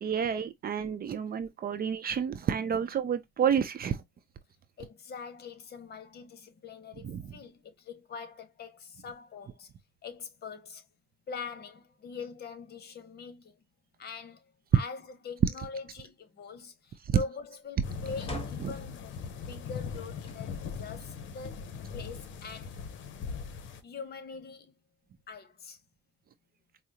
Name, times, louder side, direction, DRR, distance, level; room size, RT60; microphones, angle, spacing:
voice 1, 0.0-4.0 7.0-7.2 17.1-17.2 18.6-18.7, right 8 dB, 50° right, 0.5 m, -29 dB
voice 2, 4.8-9.7 10.0-10.8 11.3-13.6 14.0-14.4 14.7-19.1 19.5-21.6 21.9-22.8 23.8-24.7 25.3-25.8, left 5 dB, 55° left, 1.0 m, -43 dB
sound 1, 17.8-23.8, left 5 dB, 75° left, 0.7 m, -40 dB
sound 2, 18.2-18.9 19.9-20.5 21.1-21.2 22.4-23.2, left 1 dB, 30° left, 1.3 m, -43 dB
4.8 x 2.0 x 2.7 m
cardioid pair, 90°, 20 cm